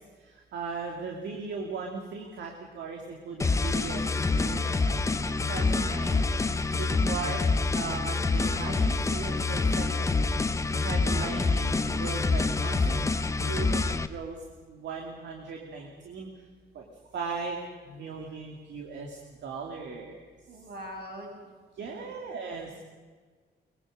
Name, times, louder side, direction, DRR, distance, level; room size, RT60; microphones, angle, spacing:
voice 1, 0.2-5.0 5.3-6.2 6.8-7.4 7.7-10.2 10.7-13.0 13.4-14.4 14.7-16.3 16.7-16.8 17.1-17.6 17.8-20.2 21.8-22.7, right 5 dB, 75° right, 1 dB, 2.7 m, -38 dB
sound 1, 3.4-14.1, left 3 dB, 15° left, 0.7 m, -26 dB
voice 2, 20.5-21.3 21.9-22.1, equal, 60° right, 0 dB, 7.3 m, -42 dB
22.5 x 22.0 x 6.6 m, 1.5 s
wide cardioid pair, 180°, 18 cm